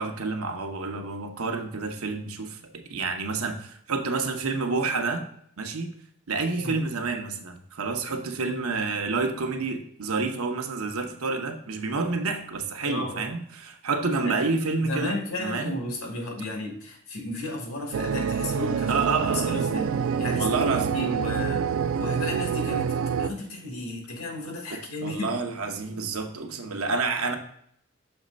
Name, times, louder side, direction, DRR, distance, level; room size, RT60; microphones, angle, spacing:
voice 1, 0.0-5.3 5.6-5.9 6.3-15.7 18.9-19.6 20.3-21.1 24.7-27.4, right 4 dB, 90° right, 5 dB, 0.8 m, -29 dB
voice 2, 12.8-13.3 14.2-14.4 14.8-19.9 20.2-21.7 22.0-25.4, left 2 dB, 90° left, 2 dB, 1.6 m, -33 dB
sound 1, 17.9-23.3, right 7 dB, 70° right, 0.3 m, -27 dB
6.3 x 3.2 x 5.1 m, 0.66 s
head